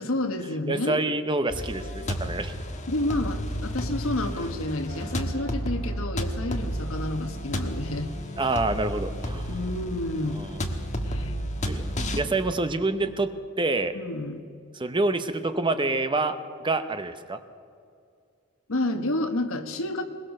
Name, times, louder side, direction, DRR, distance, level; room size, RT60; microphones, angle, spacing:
voice 1, 0.0-1.0 2.9-8.1 9.5-10.4 11.1-11.4 13.9-14.4 18.7-20.0, left 1 dB, 70° left, 7 dB, 1.4 m, -30 dB
voice 2, 0.7-2.5 8.4-9.5 10.3-10.6 11.7-11.8 12.2-13.9 14.7-17.4, right 2 dB, 20° right, 9 dB, 0.8 m, -27 dB
sound 1, 1.5-12.2, equal, 35° left, 1.5 m, -32 dB
sound 2, 4.9-10.9, right 1 dB, 45° right, 3.9 m, -48 dB
21.0 x 20.5 x 6.5 m, 2.3 s
head